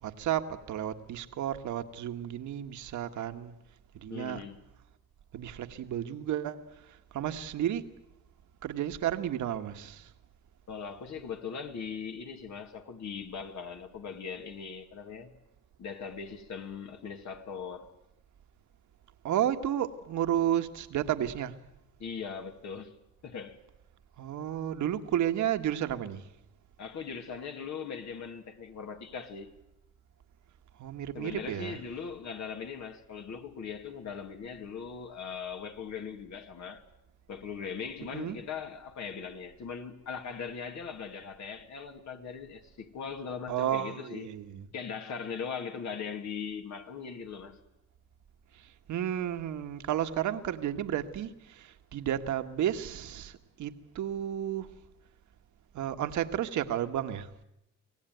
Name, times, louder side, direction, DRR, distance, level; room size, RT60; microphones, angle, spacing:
voice 1, 0.0-3.5 3.9-4.4 5.3-7.9 8.6-10.1 19.2-21.6 24.2-26.3 30.8-31.8 38.1-38.4 43.5-44.7 48.5-54.7 55.7-57.3, right 10 dB, 75° right, 1.5 m, -32 dB
voice 2, 4.1-4.6 10.7-15.3 15.8-17.9 22.0-22.9 23.2-23.6 26.8-29.5 31.1-36.8 37.3-44.3 44.7-47.6, left 6 dB, 65° left, 2.5 m, -40 dB
24.5 x 17.5 x 9.3 m
cardioid pair, 90°, 30 cm